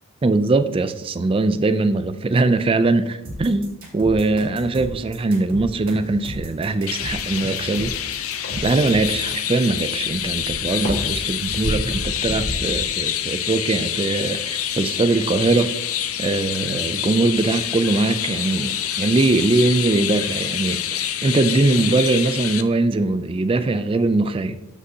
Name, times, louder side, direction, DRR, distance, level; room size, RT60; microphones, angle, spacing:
voice 1, 0.2-3.7 3.9-8.0 8.6-15.7 16.2-24.6, right 3 dB, 25° right, 0.3 m, -21 dB
sound 1, 3.2-9.2, equal, 40° right, 2.3 m, -34 dB
sound 2, 5.7-21.0, equal, 45° left, 2.1 m, -37 dB
Chirp tweet, 6.9-22.6, left 11 dB, 75° left, 0.6 m, -27 dB
14.0 x 5.2 x 2.8 m
head